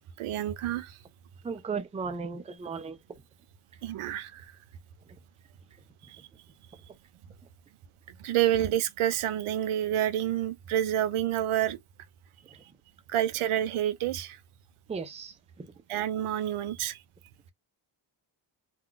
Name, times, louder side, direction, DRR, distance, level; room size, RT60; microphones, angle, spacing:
voice 1, 0.2-0.9 3.8-4.5 8.2-11.8 13.1-14.4 15.9-17.0, right 12 dB, 85° right, 0.6 m, -28 dB
voice 2, 1.4-3.0 14.9-15.7, right 5 dB, 15° right, 0.4 m, -36 dB
2.3 x 2.3 x 3.7 m
cardioid pair, 115°, 49 cm